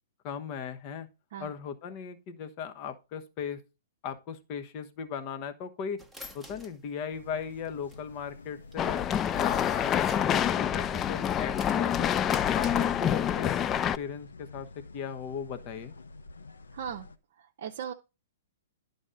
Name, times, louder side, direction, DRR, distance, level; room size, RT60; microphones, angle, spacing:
voice 1, 0.2-1.1 1.4-3.6 4.0-6.0 6.3-9.0 9.3-12.1 12.5-13.6 14.0-14.7 14.9-15.9, left 7 dB, 40° left, 1.1 m, -37 dB
sound 1, 6.0-10.4 10.8-13.4, equal, ahead, 1.0 m, -48 dB
sound 2, 7.1-17.2, left 2 dB, 80° left, 0.7 m, -49 dB
sound 3, 8.8-14.0, left 9 dB, 25° left, 0.3 m, -27 dB
voice 2, 16.7-17.1 17.4-17.9, right 8 dB, 60° right, 0.7 m, -38 dB
11.0 x 4.1 x 5.1 m
hypercardioid pair, 115°, 0 cm